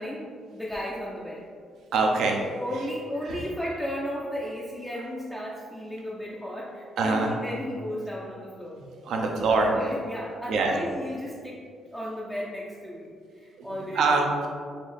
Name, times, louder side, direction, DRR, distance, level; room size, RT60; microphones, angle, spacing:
voice 1, 0.0-1.4 2.6-8.8 9.5-11.6 11.9-14.2, equal, 5° left, -6 dB, 0.6 m, -34 dB
voice 2, 1.9-2.4 2.7-2.9 3.2-3.4 4.9-5.1 7.0-7.3 9.0-9.7 10.5-10.8 13.6-14.5, right 3 dB, 75° right, 1 dB, 0.7 m, -25 dB
4.1 x 3.0 x 3.3 m, 2.1 s
cardioid pair, 90°, 0 cm